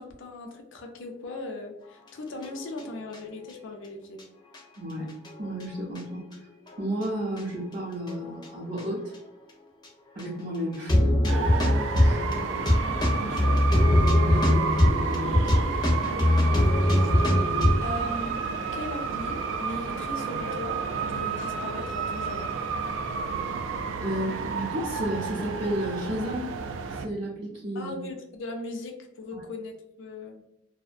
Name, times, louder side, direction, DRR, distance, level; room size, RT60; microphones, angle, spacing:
voice 1, 0.0-4.2 12.3-12.9 13.2-13.6 16.9-17.2 17.8-18.4 18.7-22.5 27.7-30.4, left 2 dB, 80° left, 3 dB, 0.5 m, -38 dB
sound 1, 2.4-3.2 3.5-3.6 4.2-4.3 4.5-4.6 5.1-6.0 6.7-7.0 7.3-7.4 8.1-8.5 8.8-8.9 9.1-9.2 9.8-9.9 10.2-10.3 10.7-17.8, left 1 dB, 20° left, 0.5 m, -22 dB
voice 2, 4.8-5.1 5.4-6.3 6.8-9.1 10.1-11.1 12.0-12.3 13.1-13.4 14.2-15.7 24.0-26.5 27.0-27.9 29.3-29.4, right 1 dB, 35° right, -6 dB, 0.6 m, -33 dB
sound 2, 11.3-27.1, right 5 dB, 85° right, 0.3 m, -31 dB
2.4 x 2.1 x 2.5 m, 0.84 s
head